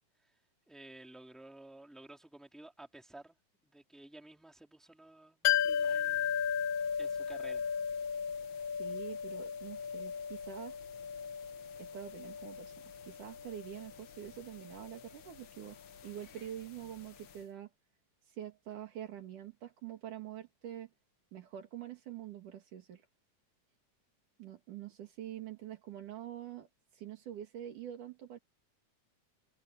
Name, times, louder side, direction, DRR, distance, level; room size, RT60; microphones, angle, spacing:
voice 1, 0.7-3.4 3.6-6.4 7.0-7.7, right 2 dB, ahead, 2.7 m, -53 dB
sound 1, 5.4-17.1 17.3-17.4, left 8 dB, 70° left, 1.1 m, -36 dB
voice 2, 8.5-10.8 11.8-12.8 13.0-17.7 18.3-20.9 21.3-23.1 24.4-28.4, right 11 dB, 75° right, 3.7 m, -46 dB
omnidirectional pair, 3.6 m